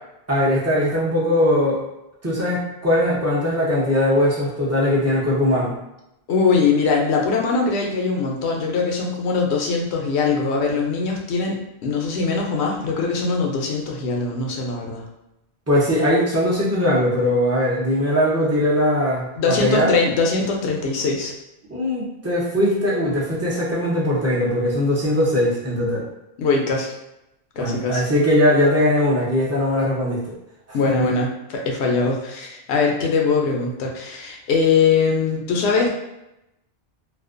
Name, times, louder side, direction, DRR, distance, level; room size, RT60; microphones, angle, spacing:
voice 1, 0.3-1.8 2.2-5.8 15.7-19.9 21.7-26.1 27.6-30.3, left 1 dB, 25° right, -5 dB, 0.4 m, -20 dB
voice 2, 6.3-15.0 19.4-21.3 26.4-26.9 27.6-28.0 30.7-35.9, left 4 dB, 90° left, 0 dB, 0.9 m, -21 dB
2.4 x 2.1 x 2.4 m, 0.88 s
omnidirectional pair, 1.1 m